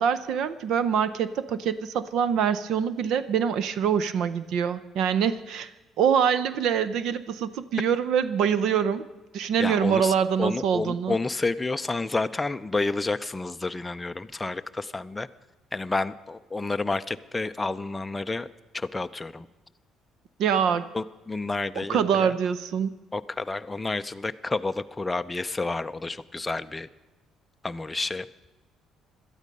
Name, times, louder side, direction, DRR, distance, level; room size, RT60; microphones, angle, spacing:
voice 1, 0.0-5.7 6.0-9.1 9.3-11.2 20.4-20.9 21.9-23.0, right 7 dB, 65° right, 14 dB, 0.6 m, -25 dB
voice 2, 9.6-15.3 15.7-18.5 18.7-19.5 20.9-22.3 23.1-26.9 27.6-28.3, left 3 dB, 10° left, 10 dB, 0.4 m, -30 dB
17.5 x 12.5 x 5.3 m, 1.1 s
cardioid pair, 145°, 0 cm